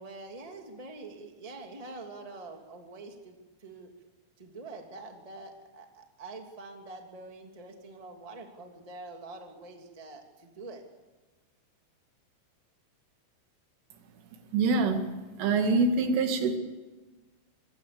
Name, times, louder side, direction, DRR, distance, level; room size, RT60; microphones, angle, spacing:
voice 1, 0.0-3.9 4.4-10.8, right 3 dB, 10° right, 2 dB, 1.8 m, -45 dB
voice 2, 14.5-15.1 15.4-16.6, right 3 dB, 85° right, 5 dB, 4.8 m, -25 dB
26.0 x 23.5 x 7.0 m, 1.2 s
omnidirectional pair, 5.5 m